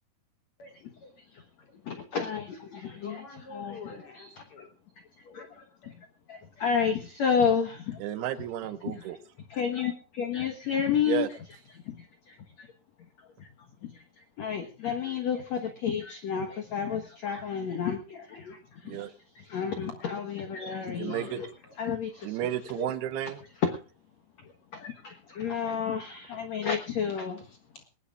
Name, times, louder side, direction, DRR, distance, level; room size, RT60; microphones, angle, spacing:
voice 1, 1.8-3.2 3.5-4.0 4.3-4.7 5.3-8.0 8.9-9.1 9.5-11.3 11.7-12.7 13.4-13.5 13.8-21.5 21.8-22.4 22.8-22.9 23.6-23.7 24.7-27.4, left 7 dB, 60° left, 6 dB, 1.9 m, -31 dB
voice 2, 3.0-4.7 21.6-21.7 22.1-22.7 26.0-26.1 27.4-27.9, left 3 dB, 35° left, 3 dB, 4.4 m, -48 dB
voice 3, 8.0-9.2 11.1-11.3 18.8-19.1 20.8-21.4 22.2-23.4, right 12 dB, 80° right, 11 dB, 2.9 m, -32 dB
20.0 x 20.0 x 2.5 m, 0.36 s
omnidirectional pair, 4.7 m